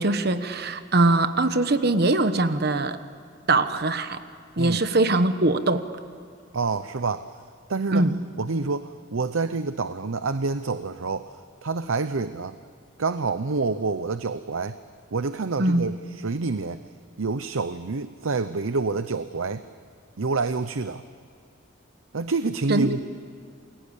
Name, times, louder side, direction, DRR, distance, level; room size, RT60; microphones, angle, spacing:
voice 1, 0.0-3.0 3.5-4.2 4.6-5.9 7.9-8.2 15.6-15.9 22.7-23.0, right 2 dB, 50° right, 10 dB, 1.2 m, -22 dB
voice 2, 6.5-7.3 7.7-8.1 8.4-12.6 13.0-14.8 15.1-16.8 17.2-19.6 20.2-21.0 22.1-23.0, right 4 dB, 90° right, 12 dB, 0.8 m, -27 dB
29.0 x 22.0 x 8.5 m, 2.3 s
head